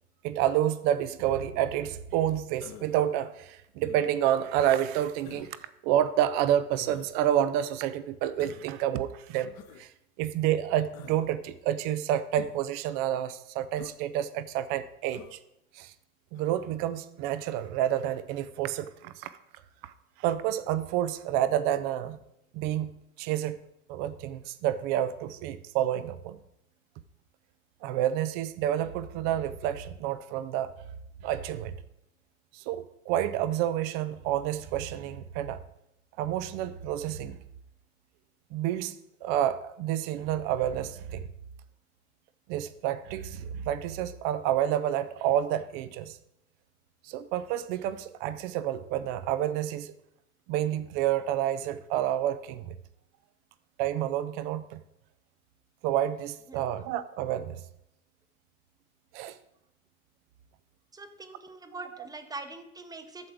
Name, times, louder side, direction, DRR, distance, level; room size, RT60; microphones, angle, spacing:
voice 1, 0.2-5.5 5.8-9.5 9.8-9.9 10.2-15.4 15.7-15.9 16.3-19.3 19.8-19.9 20.2-22.2 22.5-23.6 23.9-26.4 27.8-30.7 31.2-31.7 32.5-35.6 36.2-37.4 38.5-41.3 42.5-46.2 47.0-49.9 50.5-52.7 53.8-54.8 55.8-57.6 59.1-59.3, right 11 dB, 25° right, 14 dB, 0.3 m, -29 dB
Human voice, 2.6-3.1 3.8-4.3 5.2-5.6 6.8-7.1 8.4-8.7 9.5-9.9 10.9-11.3 12.3-12.7 13.7-14.0 15.1-15.4 16.3-16.7, left 10 dB, 35° left, 0.8 m, -48 dB
voice 2, 60.9-63.3, right 3 dB, 10° right, 8 dB, 0.8 m, -43 dB
11.5 x 7.6 x 3.5 m, 0.82 s
figure-of-eight pair, 85°, 43 cm